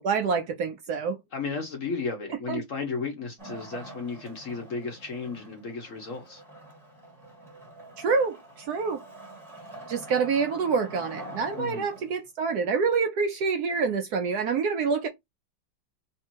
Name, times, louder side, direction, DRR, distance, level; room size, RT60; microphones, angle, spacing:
voice 1, 0.0-1.2 2.5-2.6 8.0-9.0 9.9-15.1, right 5 dB, 70° right, 1.0 m, -27 dB
voice 2, 1.3-6.4 11.5-11.9, left 4 dB, 55° left, 1.0 m, -34 dB
Wood, 3.4-12.3, right 1 dB, 20° right, 1.9 m, -45 dB
3.3 x 2.7 x 4.4 m
omnidirectional pair, 2.0 m